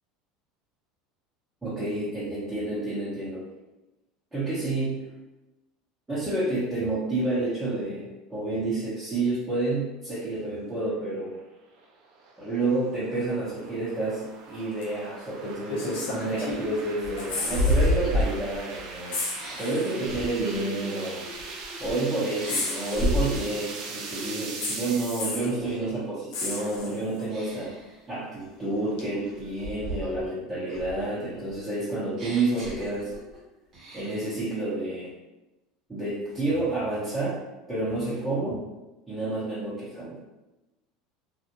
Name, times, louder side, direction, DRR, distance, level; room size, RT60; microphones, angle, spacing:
voice 1, 1.6-3.4 4.3-5.1 6.1-11.3 12.4-19.2 19.5-21.3 21.8-27.7 28.1-33.1 33.9-35.1 35.9-37.4 37.7-38.6 39.1-40.2, right 2 dB, 15° right, -12 dB, 1.0 m, -29 dB
sound 1, 11.3-25.2, right 3 dB, 65° right, 0.5 m, -41 dB
sound 2, 14.8-14.9 15.7-16.8 17.1-17.9 18.2-18.4 19.1-20.0 21.0-21.1 22.5-23.5 24.6-25.6 26.3-27.2 29.0-29.1, left 3 dB, 80° left, 0.7 m, -33 dB
sound 3, 15.5-15.6 16.1-18.9 19.4-22.0 22.4-23.6 24.1-24.4 24.7-26.0 26.4-26.8 27.3-27.9 28.4-30.3 30.7-33.4 33.7-34.4, equal, 45° right, 1.0 m, -32 dB
2.5 x 2.3 x 2.9 m, 1.0 s
supercardioid pair, 105°, 0 cm